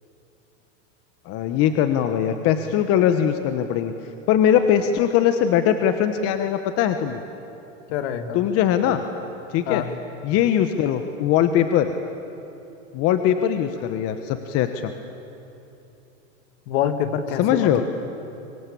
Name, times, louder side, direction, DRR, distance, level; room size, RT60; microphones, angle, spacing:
voice 1, 1.2-3.9 4.3-7.2 8.3-9.0 9.5-9.8 10.2-11.9 12.9-14.9 17.4-17.8, left 9 dB, 40° left, 8 dB, 1.2 m, -21 dB
voice 2, 7.9-8.4 9.7-9.9 16.7-17.8, left 9 dB, 60° left, 8 dB, 2.3 m, -25 dB
26.5 x 24.0 x 8.6 m, 2.9 s
supercardioid pair, 140°, 38 cm